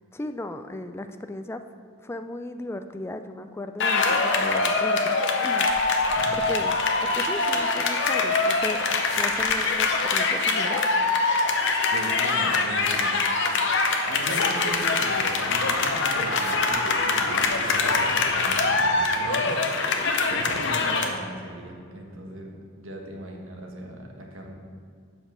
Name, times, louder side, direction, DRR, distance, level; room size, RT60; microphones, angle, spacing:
voice 1, 0.1-1.6 2.0-8.8 9.1-10.8, left 1 dB, 10° left, 8 dB, 0.3 m, -36 dB
sound 1, 3.8-21.1, left 3 dB, 60° left, 0.8 m, -23 dB
voice 2, 11.9-13.2 14.1-24.5, right 1 dB, 70° right, 1 dB, 1.2 m, -39 dB
7.1 x 5.4 x 6.2 m, 2.2 s
head